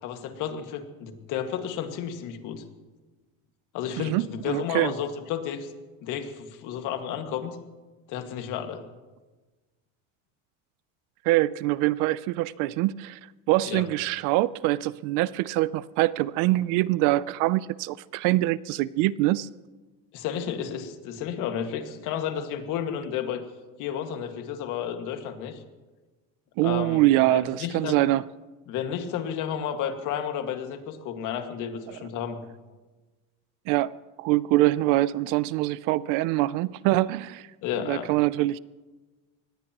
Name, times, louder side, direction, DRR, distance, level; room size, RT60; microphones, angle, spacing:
voice 1, 0.0-2.6 3.7-5.7 6.0-7.6 8.1-8.8 13.6-13.8 20.1-23.4 23.8-25.6 26.6-27.0 27.3-28.0 28.7-32.4 37.6-38.1, left 8 dB, 60° left, 2.0 m, -32 dB
voice 2, 4.0-4.9 11.2-13.2 13.5-19.5 26.6-28.2 31.9-32.0 33.7-37.5 37.8-38.6, right 17 dB, 60° right, 0.5 m, -24 dB
24.0 x 19.5 x 3.0 m
cardioid pair, 150°, 36 cm